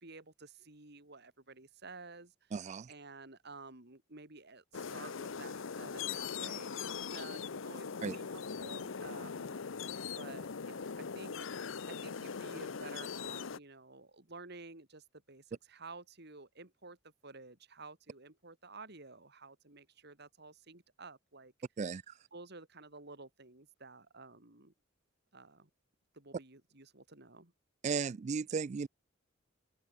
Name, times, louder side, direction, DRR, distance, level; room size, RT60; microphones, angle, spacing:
voice 1, 0.0-2.5 2.9-9.7 10.2-17.0 17.2-21.5 22.3-24.7 25.3-25.7 26.1-27.5, right 3 dB, 55° right, 3.6 m, -52 dB
voice 2, 2.5-2.9 8.0-8.2 21.8-22.1 27.8-28.9, right 5 dB, 35° right, 0.3 m, -35 dB
sound 1, 4.7-13.6, left 6 dB, 75° left, 0.7 m, -41 dB
open air
head